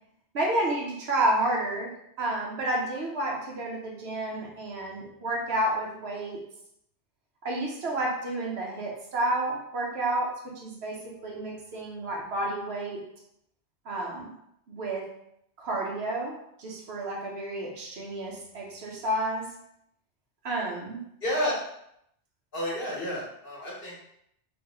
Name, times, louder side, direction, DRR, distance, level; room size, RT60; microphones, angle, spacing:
voice 1, 0.3-6.4 7.4-13.0 13.8-14.3 14.7-15.1 15.6-19.5 20.4-21.0, right 1 dB, 70° right, -2 dB, 1.1 m, -30 dB
voice 2, 21.2-21.5 22.5-24.1, equal, 55° left, -6 dB, 1.4 m, -30 dB
3.2 x 3.0 x 3.6 m, 0.75 s
omnidirectional pair, 1.1 m